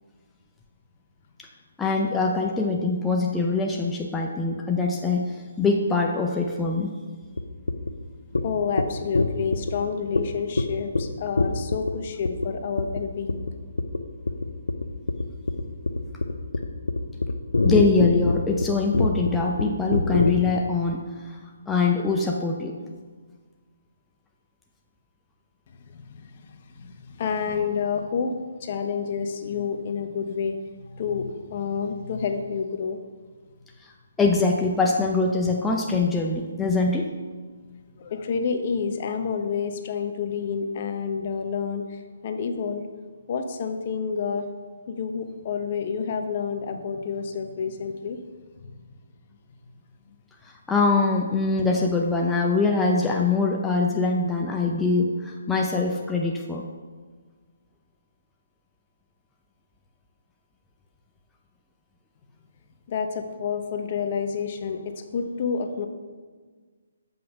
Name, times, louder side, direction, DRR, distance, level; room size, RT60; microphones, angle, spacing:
voice 1, 1.8-6.9 17.6-21.4 21.7-22.8 33.8-33.9 34.2-37.1 50.7-56.6, left 3 dB, 10° left, -1 dB, 0.6 m, -23 dB
sound 1, 7.4-7.5 7.7-7.9 8.3-8.4 8.8-8.9 9.1-9.7 10.1-10.2 10.6-10.7 10.9-11.0 11.4-11.9 12.2-12.5 12.8-13.0 13.3-13.5 13.8-14.0 14.3-20.3, left 3 dB, 85° left, 0.7 m, -23 dB
voice 2, 8.4-13.4 25.9-30.6 30.8-33.0 38.0-42.9 43.3-44.5 44.9-48.2 48.6-48.8 62.9-65.9, left 6 dB, 45° left, 6 dB, 0.9 m, -29 dB
7.7 x 5.5 x 5.4 m, 1.5 s
figure-of-eight pair, 145°, 0 cm